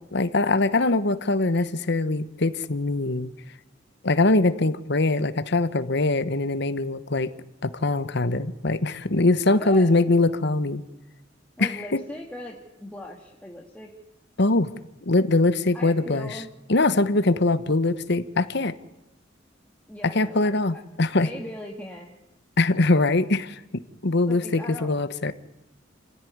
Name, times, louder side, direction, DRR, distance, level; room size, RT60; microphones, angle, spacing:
voice 1, 0.0-3.3 4.0-7.3 7.6-10.8 11.6-12.0 14.4-14.7 15.1-16.4 16.7-18.7 20.1-21.3 22.6-25.3, left 2 dB, 65° left, 13 dB, 1.2 m, -22 dB
voice 2, 9.6-9.9 11.6-13.9 15.7-16.5 19.9-20.8 21.1-22.2 24.2-24.9, left 1 dB, 10° left, 0 dB, 1.8 m, -39 dB
28.0 x 15.5 x 9.5 m, 0.93 s
head